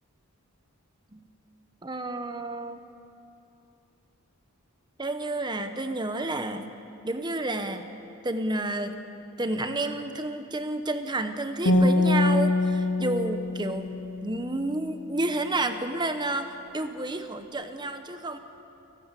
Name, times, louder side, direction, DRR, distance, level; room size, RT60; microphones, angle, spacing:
voice 1, 1.8-2.8 5.0-6.7 7.0-7.9 8.2-9.0 9.4-13.9 14.2-18.4, right 2 dB, 20° right, 8 dB, 1.0 m, -30 dB
sound 1, 11.7-14.8, left 2 dB, 85° left, 2.3 m, -24 dB
29.5 x 12.5 x 8.3 m, 2.7 s
head